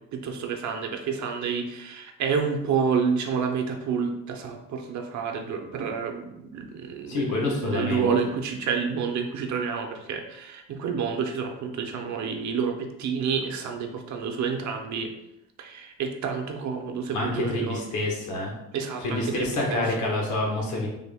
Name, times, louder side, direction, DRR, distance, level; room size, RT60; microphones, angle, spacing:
voice 1, 0.1-15.1 15.6-17.8 18.7-19.8, right 6 dB, 70° right, 4 dB, 0.6 m, -29 dB
voice 2, 7.1-8.1 17.1-18.5 19.0-20.9, left 2 dB, 75° left, -1 dB, 1.2 m, -27 dB
3.5 x 2.2 x 3.4 m, 0.86 s
cardioid pair, 90°, 30 cm